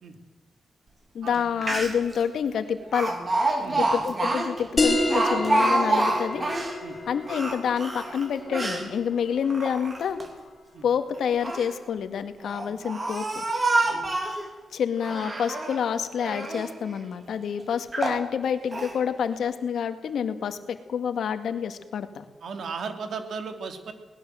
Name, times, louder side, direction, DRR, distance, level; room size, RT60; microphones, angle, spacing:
voice 1, 1.1-3.1 3.8-6.4 7.1-10.4 10.8-13.4 14.7-22.2, left 7 dB, 80° left, 9 dB, 2.0 m, -28 dB
Speech, 1.3-1.4 1.6-2.2 2.9-6.8 7.2-8.9 9.4-10.3 11.2-11.7 12.4-14.5 15.0-15.8 16.2-16.7 17.3-17.4 17.9-18.2 18.7-19.0, right 2 dB, 30° right, 3.6 m, -27 dB
voice 2, 3.6-3.9 6.8-7.0 10.7-10.8 13.8-14.1 22.4-23.9, right 5 dB, 70° right, 7 dB, 3.1 m, -36 dB
sound 1, 4.8-9.9, left 2 dB, 35° left, 3.9 m, -29 dB
22.5 x 19.5 x 7.8 m, 1.3 s
wide cardioid pair, 120°, 0 cm